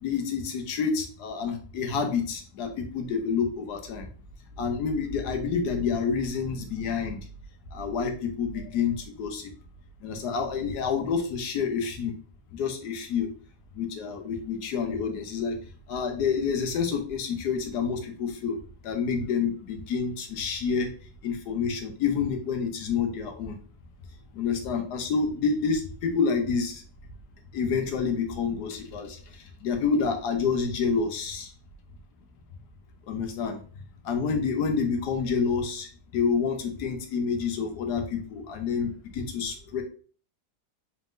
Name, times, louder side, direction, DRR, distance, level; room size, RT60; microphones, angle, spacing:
voice 1, 0.0-4.1 4.6-7.2 7.7-9.5 10.0-12.1 12.5-13.3 13.8-15.5 15.9-18.6 18.8-20.9 21.2-23.6 24.4-26.8 27.5-29.2 29.6-31.5 33.1-33.6 34.0-35.9 36.1-39.8, left 5 dB, 80° left, 4 dB, 1.4 m, -28 dB
4.1 x 3.7 x 2.5 m, 0.41 s
omnidirectional pair, 1.7 m